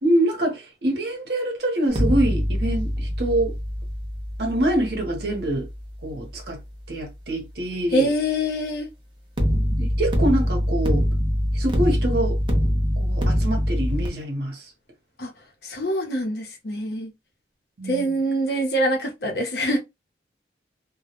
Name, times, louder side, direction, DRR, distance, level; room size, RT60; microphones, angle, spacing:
voice 1, 0.0-3.5 4.4-5.7 6.0-6.6 6.9-8.1 9.5-11.0 11.5-12.4 13.0-14.7 17.8-18.2, right 1 dB, 65° right, 0.8 m, -25 dB
sound 1, 1.9-7.0 9.4-14.1, equal, 25° right, 0.5 m, -24 dB
voice 2, 7.9-8.9 15.2-15.3 15.6-17.1 17.9-19.8, equal, 60° left, 0.7 m, -24 dB
2.1 x 2.1 x 2.8 m
head